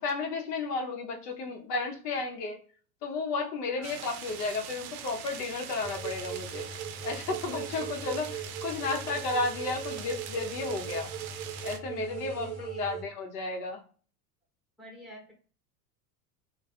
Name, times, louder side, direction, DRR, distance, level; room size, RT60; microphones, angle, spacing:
voice 1, 0.0-2.6 3.0-6.7 7.0-11.1 11.6-13.8, left 3 dB, 75° left, 2 dB, 0.8 m, -33 dB
voice 2, 3.8-4.1 7.7-7.9 12.0-12.9 14.8-15.3, left 1 dB, ahead, -1 dB, 0.9 m, -48 dB
sound 1, 3.8-11.8, right 9 dB, 65° right, 0.5 m, -43 dB
sound 2, 5.8-13.0, right 7 dB, 30° right, 0.7 m, -39 dB
2.3 x 2.2 x 2.4 m, 0.41 s
hypercardioid pair, 90°, 47 cm